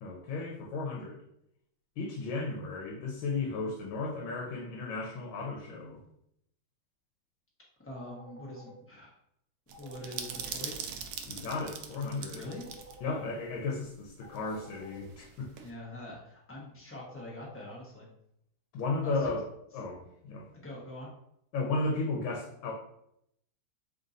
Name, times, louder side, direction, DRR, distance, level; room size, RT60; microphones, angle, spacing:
voice 1, 0.0-1.2 2.0-6.0 11.3-12.4 13.0-15.5 18.7-19.4 19.7-20.5 21.5-22.7, left 3 dB, 80° left, -1 dB, 1.5 m, -34 dB
voice 2, 7.8-9.2 9.8-10.7 12.3-12.7 13.1-13.2 15.6-18.1 19.0-19.3 20.5-21.1, left 1 dB, 15° left, -5 dB, 0.5 m, -44 dB
sound 1, 8.0-8.7 9.7-10.5 12.5-13.2 14.2-15.0 17.0-17.7, equal, 65° right, 1.3 m, -50 dB
sound 2, 9.7-13.0 13.2-13.3 14.3-15.7, right 7 dB, 85° right, 0.8 m, -41 dB
3.7 x 2.6 x 3.8 m, 0.76 s
omnidirectional pair, 2.2 m